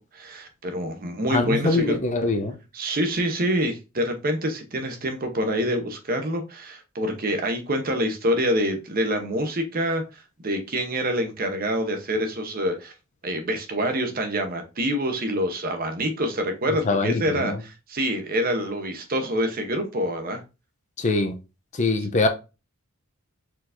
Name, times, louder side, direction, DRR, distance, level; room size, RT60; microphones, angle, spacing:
voice 1, 0.1-2.0 2.7-12.9 13.2-20.4, equal, 45° right, 0.9 m, -26 dB
voice 2, 1.3-2.5 16.8-17.6 21.0-21.4 21.7-22.3, left 3 dB, 35° left, 0.5 m, -23 dB
4.6 x 3.9 x 2.6 m
head